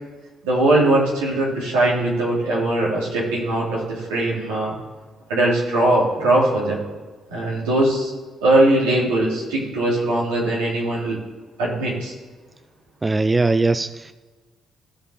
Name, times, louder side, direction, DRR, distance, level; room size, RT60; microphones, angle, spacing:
voice 1, 0.4-4.7 5.3-6.8 7.3-8.1 8.4-11.2 11.6-12.1, right 1 dB, 90° right, -5 dB, 3.1 m, -20 dB
voice 2, 13.0-14.1, right 3 dB, 25° right, 12 dB, 0.5 m, -20 dB
15.0 x 5.2 x 3.9 m, 1.3 s
hypercardioid pair, 50°, 0 cm